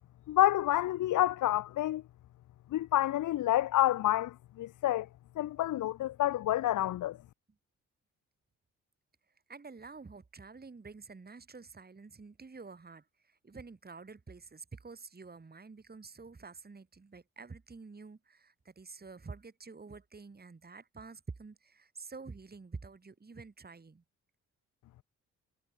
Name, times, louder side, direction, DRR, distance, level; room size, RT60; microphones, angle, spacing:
voice 1, 0.3-2.0 2.7-5.1 5.4-7.2, left 14 dB, 60° left, 0.6 m, -28 dB
voice 2, 9.3-24.0, right 4 dB, 25° right, 2.3 m, -49 dB
supercardioid pair, 55°, 34 cm